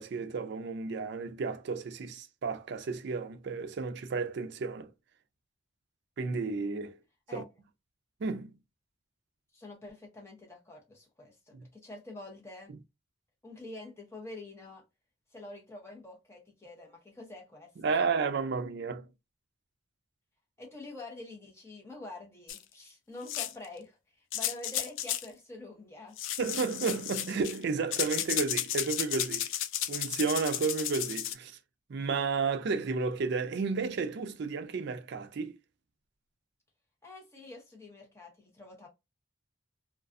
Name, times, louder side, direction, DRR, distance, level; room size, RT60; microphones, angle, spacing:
voice 1, 0.0-4.9 6.2-7.0 7.3-7.4 8.2-8.6 11.5-11.6 17.8-19.1 26.4-29.5 29.9-31.6 31.9-35.6, right 4 dB, 55° right, 0.4 m, -32 dB
voice 2, 9.5-12.7 13.4-14.8 15.3-18.1 20.6-26.2 37.0-38.9, left 2 dB, 15° left, 0.7 m, -47 dB
sound 1, 22.5-22.6 23.3-23.7 24.3-25.3 26.2-27.6 27.9-31.3, left 11 dB, 70° left, 0.3 m, -33 dB
2.3 x 2.3 x 2.4 m
head